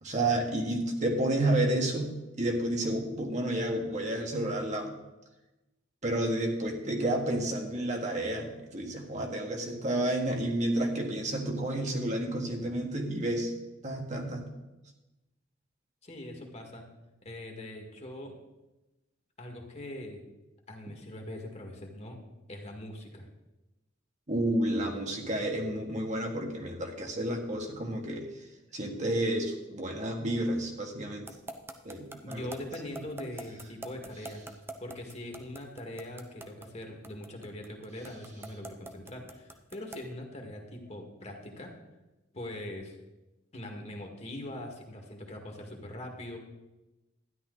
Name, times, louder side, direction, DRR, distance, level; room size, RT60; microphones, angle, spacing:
voice 1, 0.0-5.0 6.0-13.5 13.8-14.4 24.3-28.3 28.7-31.3 31.8-32.5, right 1 dB, 35° right, 1 dB, 1.6 m, -30 dB
voice 2, 16.0-16.9 17.2-18.3 19.4-20.2 20.7-22.2 22.5-23.2 32.2-34.4 34.8-41.7 42.3-43.0 43.5-46.4, left 1 dB, 35° left, 2 dB, 1.9 m, -42 dB
sound 1, 31.3-40.1, right 2 dB, 10° right, 0.7 m, -43 dB
13.0 x 10.5 x 3.9 m, 1.0 s
head